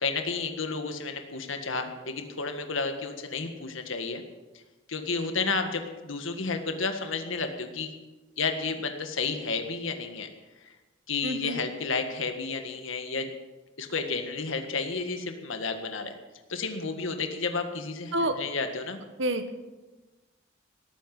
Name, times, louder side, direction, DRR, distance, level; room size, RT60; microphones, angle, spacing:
voice 1, 0.0-4.2 4.9-7.9 8.4-10.3 10.6-10.7 11.1-13.3 13.8-16.1 16.5-19.0, left 4 dB, 75° left, 6 dB, 1.7 m, -31 dB
voice 2, 11.2-11.5 18.1-18.4 19.2-19.5, right 1 dB, 65° right, 8 dB, 1.3 m, -28 dB
18.5 x 9.1 x 7.6 m, 1.2 s
head